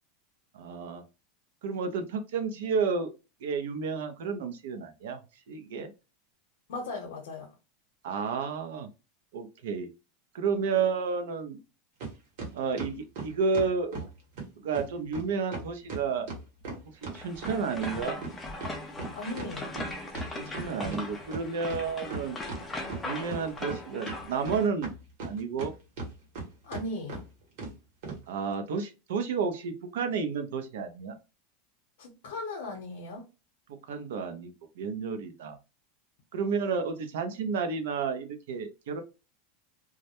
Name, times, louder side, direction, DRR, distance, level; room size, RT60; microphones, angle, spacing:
voice 1, 0.5-1.0 1.6-3.1 3.4-5.2 5.5-5.9 8.0-8.9 9.3-9.9 10.3-11.6 12.5-14.0 14.6-16.3 17.1-18.2 20.3-22.4 23.0-24.9 25.2-25.7 28.3-31.2 33.9-35.6 36.3-39.0, right 5 dB, 75° right, 0.5 m, -31 dB
voice 2, 6.7-7.5 19.1-19.7 26.6-27.2 32.0-33.3, left 2 dB, 75° left, 0.7 m, -37 dB
sound 1, 12.0-12.1 12.4-14.1 14.4-14.5 14.7-14.9 15.1-15.2 15.5-17.9 18.2-21.0 21.3-21.4 21.7-22.6 22.9-23.8 24.1-25.7 26.0-26.4 26.7-26.8 27.1-27.2 27.6-27.7 28.0-28.2, right 3 dB, 50° right, 1.0 m, -37 dB
sound 2, 17.1-24.7, left 2 dB, 10° left, 0.3 m, -39 dB
2.2 x 2.0 x 2.8 m
supercardioid pair, 180°, 0 cm